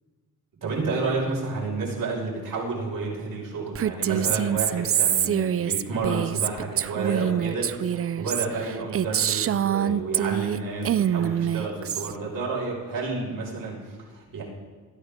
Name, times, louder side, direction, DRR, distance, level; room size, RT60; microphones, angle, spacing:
voice 1, 0.6-14.4, right 3 dB, 55° right, -4 dB, 5.6 m, -30 dB
Female speech woman speaking, 3.7-10.6 10.8-12.1, right 10 dB, 35° right, 0.4 m, -25 dB
19.0 x 14.0 x 3.6 m, 1.5 s
cardioid pair, 80°, 39 cm